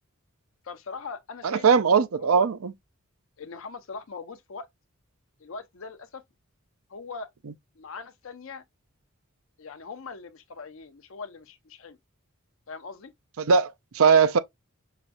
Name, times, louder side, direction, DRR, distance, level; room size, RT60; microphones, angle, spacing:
voice 1, 0.6-1.6 1.9-2.5 3.4-4.7 5.4-6.2 6.9-7.3 7.8-8.6 9.6-12.0 12.7-13.1, left 4 dB, 65° left, 0.6 m, -41 dB
voice 2, 1.4-2.7 13.4-14.4, right 6 dB, 70° right, 0.5 m, -20 dB
5.8 x 2.3 x 2.5 m
head